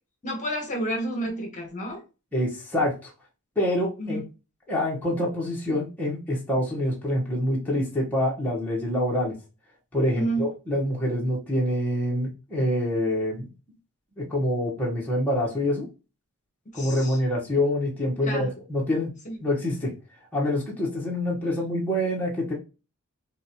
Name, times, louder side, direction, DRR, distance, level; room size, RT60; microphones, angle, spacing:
voice 1, 0.2-2.0 4.0-4.2 10.2-10.5 16.7-17.2 18.2-18.5 19.2-19.4, right 1 dB, 35° left, 1 dB, 1.4 m, -30 dB
voice 2, 2.3-3.1 3.5-4.2 4.7-9.3 9.9-13.5 14.2-15.9 16.7-19.1 19.4-19.9 20.3-22.5, left 1 dB, 10° left, -4 dB, 1.4 m, -26 dB
6.2 x 2.6 x 3.1 m, 0.30 s
head